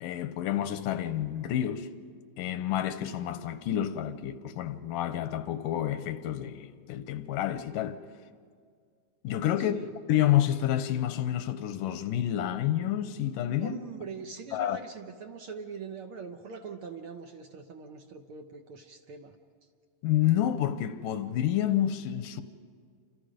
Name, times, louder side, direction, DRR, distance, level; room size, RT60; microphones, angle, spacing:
voice 1, 0.0-1.9 2.4-8.0 9.2-13.8 14.5-14.8 20.0-22.4, left 11 dB, 85° left, 2.5 m, -29 dB
voice 2, 9.6-9.9 13.6-19.4, right 5 dB, 75° right, 1.2 m, -42 dB
29.5 x 26.5 x 5.1 m
omnidirectional pair, 3.8 m